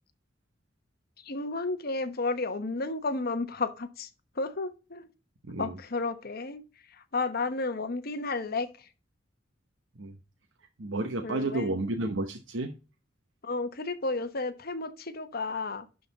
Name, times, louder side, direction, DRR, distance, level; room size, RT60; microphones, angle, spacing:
voice 1, 1.2-4.1 4.3-5.1 5.6-6.6 6.9-8.9 11.2-11.9 13.4-15.9, left 3 dB, 50° left, 1.1 m, -32 dB
voice 2, 10.8-12.7, right 2 dB, 70° right, 0.9 m, -31 dB
11.5 x 3.9 x 4.0 m
head